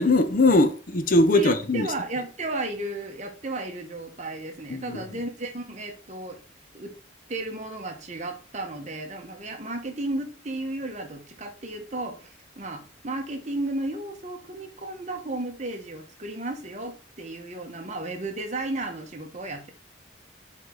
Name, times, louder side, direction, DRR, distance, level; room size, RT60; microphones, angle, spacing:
voice 1, 0.0-1.9 4.7-5.0, left 2 dB, 45° left, 0.6 m, -20 dB
voice 2, 1.3-6.4 6.7-6.9 7.3-19.7, right 2 dB, 35° right, 1.4 m, -34 dB
7.9 x 4.4 x 3.9 m
head